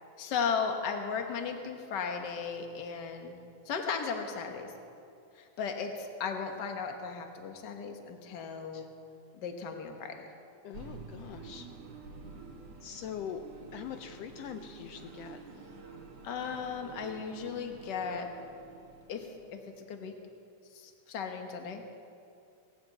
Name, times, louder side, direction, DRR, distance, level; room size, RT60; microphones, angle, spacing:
voice 1, 0.2-3.4 3.6-4.7 5.3-8.9 9.4-10.3 16.2-18.3 19.1-19.6 19.9-20.1 20.7-21.8, left 6 dB, 50° left, 4 dB, 1.3 m, -36 dB
voice 2, 10.6-11.7 12.8-13.4 13.7-15.7, left 9 dB, 85° left, 7 dB, 1.4 m, -43 dB
sound 1, 10.7-19.9, right 4 dB, 55° right, 2.5 m, -49 dB
18.0 x 9.7 x 8.0 m, 2.6 s
omnidirectional pair, 3.5 m